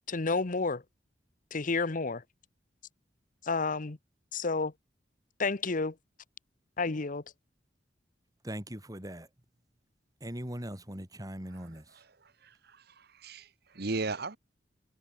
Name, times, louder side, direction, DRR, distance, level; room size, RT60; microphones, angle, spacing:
voice 1, 0.1-0.8 1.5-2.2 3.4-4.0 4.3-4.7 5.4-5.9 6.8-7.2, left 4 dB, 50° left, 1.0 m, -30 dB
voice 2, 8.4-9.3 10.2-12.0, equal, 20° right, 5.4 m, -40 dB
voice 3, 12.2-14.4, right 3 dB, 60° right, 1.4 m, -37 dB
head